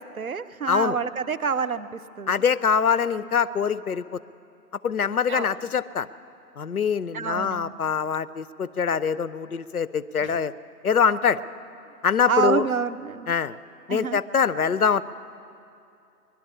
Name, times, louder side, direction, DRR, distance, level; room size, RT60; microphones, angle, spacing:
voice 1, 0.0-2.4 5.3-5.6 7.1-7.7 10.2-10.3 12.3-13.3 13.9-14.2, right 6 dB, 60° right, 13 dB, 0.6 m, -28 dB
voice 2, 0.7-1.0 2.3-4.2 4.8-6.1 6.6-10.5 10.8-11.4 12.0-12.7 13.3-13.6 13.9-15.0, left 6 dB, 65° left, 16 dB, 0.5 m, -24 dB
21.0 x 11.5 x 5.5 m, 2.6 s
figure-of-eight pair, 170°, 49 cm